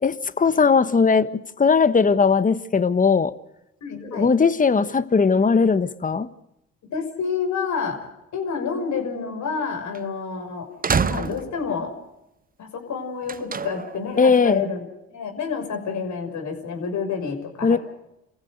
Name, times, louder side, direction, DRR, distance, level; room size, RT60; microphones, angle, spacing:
voice 1, 0.0-3.3 4.0-6.3 14.2-14.6 17.6-17.8, left 5 dB, 25° left, 15 dB, 1.3 m, -19 dB
voice 2, 3.8-4.3 6.9-8.0 8.3-10.7 11.0-11.9 12.6-14.8 15.1-17.8, left 5 dB, 60° left, 4 dB, 6.1 m, -28 dB
sound 1, 9.9-10.0 10.8-11.7 13.3-14.0, right 5 dB, 25° right, 0.9 m, -26 dB
28.0 x 15.0 x 6.6 m, 0.88 s
hypercardioid pair, 65°, 33 cm